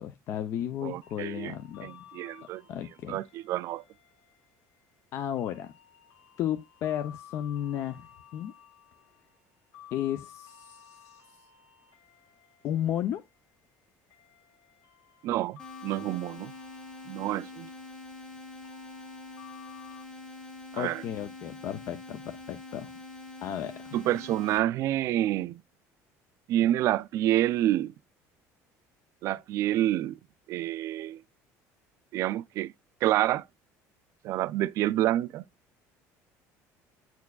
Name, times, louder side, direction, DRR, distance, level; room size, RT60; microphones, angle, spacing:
voice 1, 0.0-1.9 2.7-3.2 5.1-5.7 6.4-8.5 9.9-11.2 12.6-13.2 20.8-22.9 23.4-24.0, left 10 dB, 50° left, 0.6 m, -33 dB
voice 2, 0.8-1.6 1.8-2.6 3.1-3.8 15.2-16.5 17.1-17.7 20.7-21.0 23.9-25.6 26.5-27.9 29.2-30.2 30.5-31.2 32.1-32.7 33.0-33.4 34.2-35.4, right 13 dB, 50° right, 0.3 m, -28 dB
sound 1, 1.0-20.0, left 9 dB, 80° left, 2.9 m, -55 dB
sound 2, 15.6-24.6, left 2 dB, 15° left, 1.8 m, -45 dB
9.4 x 4.5 x 2.3 m
cardioid pair, 160°, 6 cm